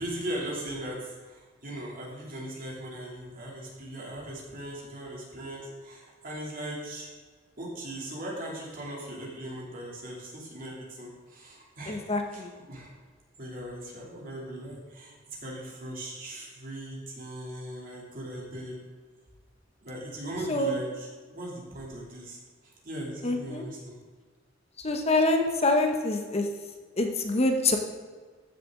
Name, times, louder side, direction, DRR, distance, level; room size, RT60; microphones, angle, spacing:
voice 1, 0.0-7.1 7.6-12.9 13.4-18.8 19.8-22.4 22.6-24.0, right 1 dB, 45° right, -4 dB, 2.9 m, -39 dB
voice 2, 11.9-12.5 20.5-20.8 23.2-23.7 24.8-26.5 27.0-27.8, left 2 dB, 35° left, 4 dB, 0.9 m, -25 dB
14.5 x 6.7 x 3.8 m, 1.5 s
head